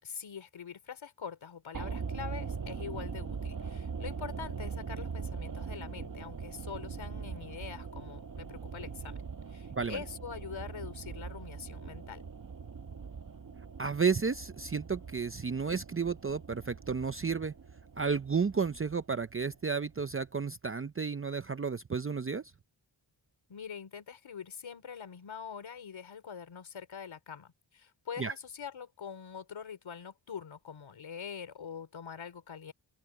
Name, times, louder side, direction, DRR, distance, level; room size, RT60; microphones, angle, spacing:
voice 1, 0.0-9.2 9.5-12.2 23.5-32.7, left 7 dB, 85° left, 3.7 m, -44 dB
sound 1, 1.7-19.9 20.2-20.3, right 5 dB, 45° right, 1.0 m, -42 dB
voice 2, 13.8-17.5 18.0-22.5 28.2-28.3, right 5 dB, 30° right, 0.6 m, -32 dB
wide cardioid pair, 95°, 46 cm